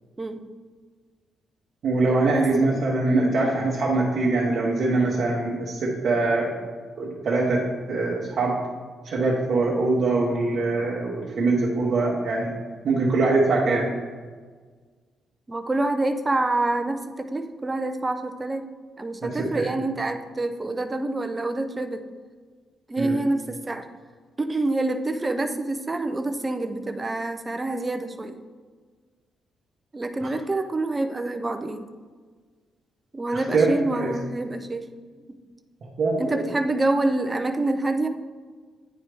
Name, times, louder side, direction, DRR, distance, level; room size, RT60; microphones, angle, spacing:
voice 1, 1.8-6.5 7.0-8.6 9.0-12.5 12.8-13.8 19.2-19.7 23.0-23.2 30.2-30.3 33.3-34.1 36.0-36.5, right 3 dB, 45° right, -5 dB, 1.0 m, -23 dB
voice 2, 15.5-18.7 19.0-22.0 22.9-23.9 24.4-28.4 29.9-31.9 33.1-34.9 35.3-35.4 36.2-38.1, right 2 dB, 15° right, 7 dB, 0.4 m, -27 dB
9.4 x 4.6 x 3.4 m, 1.5 s
cardioid pair, 165°, 0 cm